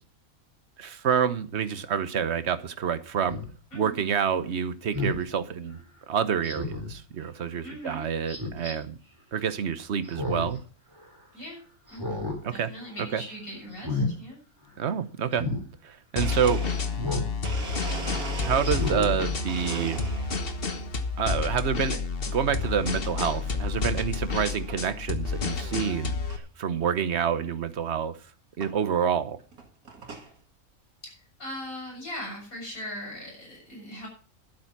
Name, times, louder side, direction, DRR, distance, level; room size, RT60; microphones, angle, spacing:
voice 1, 0.8-3.4 3.7-5.8 6.1-8.9 9.3-10.6 12.4-12.7 13.1-13.2 14.8-15.4 15.8-16.6 18.4-20.0 21.2-22.0 22.3-28.2 28.6-29.4, right 7 dB, 55° right, 1.2 m, -28 dB
Speech synthesizer, 3.3-3.5 4.9-5.2 6.4-6.9 8.3-8.7 10.0-10.6 11.0-11.1 11.9-12.4 12.8-13.1 13.7-14.1 15.3-15.6 17.0-17.3 17.8-17.9 18.6-19.1 19.6-19.7, left 2 dB, 15° right, 4.1 m, -31 dB
voice 2, 7.6-8.1 11.3-11.6 11.9-14.4 24.3-24.4 31.0-31.1 31.4-34.1, equal, 70° left, 7.7 m, -39 dB
Domestic sounds home sounds, 15.9-16.0 16.2-19.1 19.5-20.5 21.0-21.5 22.5-22.8 23.4-23.5 24.3-24.4 24.7-25.0 25.5-25.6 25.7-25.8 26.3-26.4 27.7-27.8 28.6-28.8 29.4-30.3, right 4 dB, 85° right, 2.3 m, -39 dB
sound 1, 16.2-26.4, left 4 dB, 45° left, 1.3 m, -30 dB
12.0 x 9.0 x 6.0 m
omnidirectional pair, 1.5 m